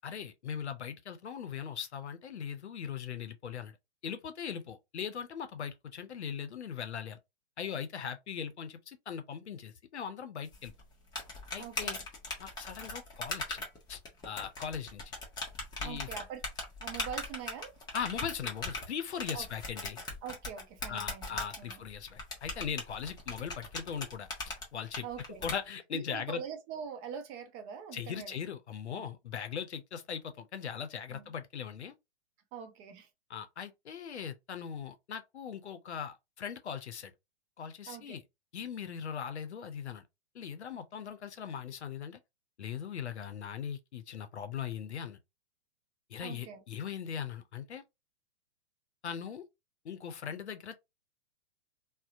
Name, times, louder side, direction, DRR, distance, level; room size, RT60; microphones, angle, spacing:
voice 1, 0.0-3.7 4.0-7.2 7.6-10.7 11.5-12.0 12.4-14.0 14.2-15.0 15.8-16.1 17.9-20.0 20.9-24.3 24.7-25.1 25.4-26.4 27.9-31.9 33.3-37.1 37.6-38.2 38.5-40.0 40.3-42.2 42.6-45.2 46.1-47.8 49.0-49.4 49.8-50.8, left 7 dB, 90° left, 0.6 m, -39 dB
sound 1, 10.5-25.5, left 2 dB, 15° left, 0.7 m, -40 dB
voice 2, 11.6-12.0 15.8-16.4 16.8-17.8 19.3-19.5 20.2-21.8 25.0-25.4 25.9-28.4 28.9-29.1 31.1-31.3 32.5-33.1 37.9-38.2 46.2-46.6, right 7 dB, 30° right, 0.5 m, -43 dB
2.7 x 2.1 x 2.4 m
hypercardioid pair, 120°, 33 cm